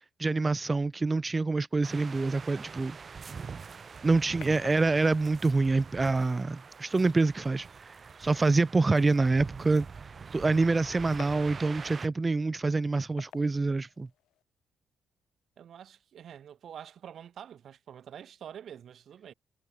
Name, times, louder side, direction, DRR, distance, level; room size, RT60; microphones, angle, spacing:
voice 1, 0.0-3.0 4.0-9.9 10.3-14.1, right 3 dB, 25° right, 0.4 m, -26 dB
sound 1, 1.8-12.1, right 5 dB, 40° right, 2.4 m, -44 dB
sound 2, 5.2-14.4, left 13 dB, 80° left, 2.0 m, -56 dB
voice 2, 15.6-19.3, right 9 dB, 60° right, 1.2 m, -46 dB
cardioid pair, 90°, 0 cm